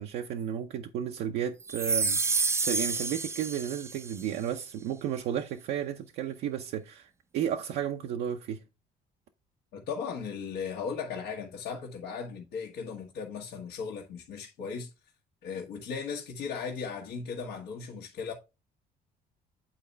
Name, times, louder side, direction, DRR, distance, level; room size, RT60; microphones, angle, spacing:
voice 1, 0.0-8.6, right 9 dB, 80° right, 0.7 m, -33 dB
sound 1, 1.7-4.2, right 4 dB, 15° right, 0.4 m, -29 dB
voice 2, 9.7-14.9 15.4-18.3, left 6 dB, 85° left, 1.4 m, -37 dB
8.9 x 4.2 x 3.3 m
cardioid pair, 110°, 17 cm